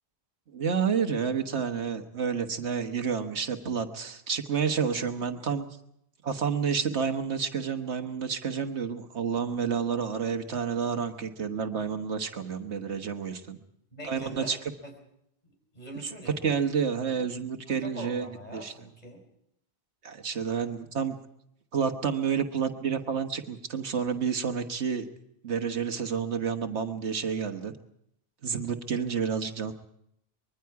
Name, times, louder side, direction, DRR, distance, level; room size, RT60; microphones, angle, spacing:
voice 1, 0.5-5.7 6.2-13.6 14.0-14.6 16.4-18.3 18.5-18.7 20.0-21.2 21.7-25.1 25.4-27.7 28.4-29.7, right 6 dB, 85° right, 7 dB, 1.6 m, -29 dB
voice 2, 13.9-14.5 14.8-14.9 15.7-16.4 17.7-19.2, equal, 40° left, 3 dB, 4.5 m, -43 dB
24.5 x 22.0 x 4.8 m, 0.75 s
omnidirectional pair, 1.1 m